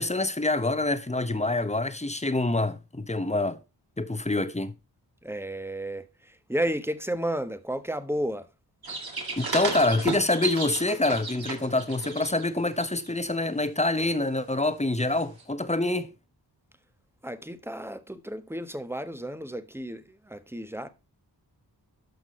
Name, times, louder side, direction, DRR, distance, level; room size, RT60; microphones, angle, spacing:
voice 1, 0.0-3.6 4.0-4.7 9.4-16.1, left 2 dB, 15° left, 1.2 m, -26 dB
voice 2, 5.2-8.5 17.2-20.9, right 1 dB, 5° right, 1.3 m, -32 dB
sound 1, 8.8-12.5 12.8-13.1 15.4-15.5, right 3 dB, 60° right, 3.3 m, -33 dB
12.0 x 6.1 x 4.3 m
cardioid pair, 50°, 41 cm